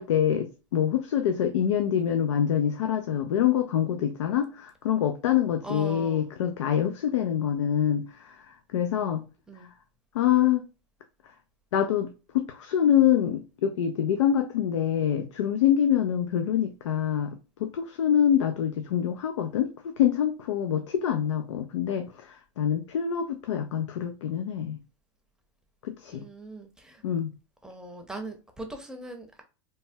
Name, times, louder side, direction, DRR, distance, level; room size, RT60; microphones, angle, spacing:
voice 1, 0.0-8.4 8.7-9.2 10.1-10.7 11.7-19.7 20.0-24.8 25.8-26.2 27.0-27.3, left 9 dB, 90° left, 0.4 m, -25 dB
voice 2, 5.6-6.3 9.5-9.7 26.1-27.0 27.6-29.4, right 2 dB, 5° right, 0.6 m, -40 dB
3.3 x 2.1 x 2.6 m
hypercardioid pair, 120°, 15 cm